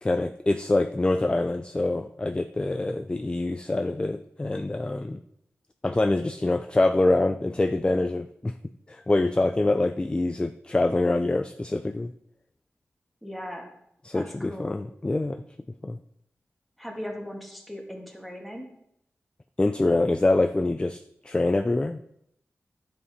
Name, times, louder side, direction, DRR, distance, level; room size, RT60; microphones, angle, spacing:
voice 1, 0.0-5.2 5.8-8.5 8.9-12.1 14.0-15.4 15.8-16.0 19.6-22.0, left 2 dB, 20° left, 7 dB, 0.4 m, -25 dB
voice 2, 13.2-13.7 14.1-14.8 16.8-18.7, equal, ahead, 0 dB, 2.0 m, -38 dB
11.5 x 7.3 x 4.2 m, 0.76 s
wide cardioid pair, 105°, 5 cm